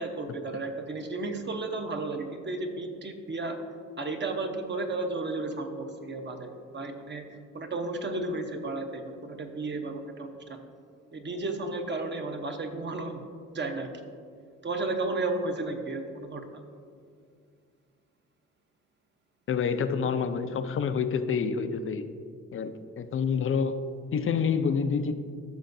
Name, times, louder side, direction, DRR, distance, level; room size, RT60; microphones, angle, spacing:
voice 1, 0.0-3.6 4.0-7.2 7.5-10.6 11.1-13.2 13.5-13.9 14.6-16.6, right 2 dB, 35° right, 4 dB, 1.0 m, -33 dB
voice 2, 19.5-22.1 22.5-23.8 24.1-25.1, left 6 dB, 45° left, 10 dB, 0.6 m, -28 dB
14.0 x 6.3 x 2.7 m, 2.2 s
cardioid pair, 90°, 30 cm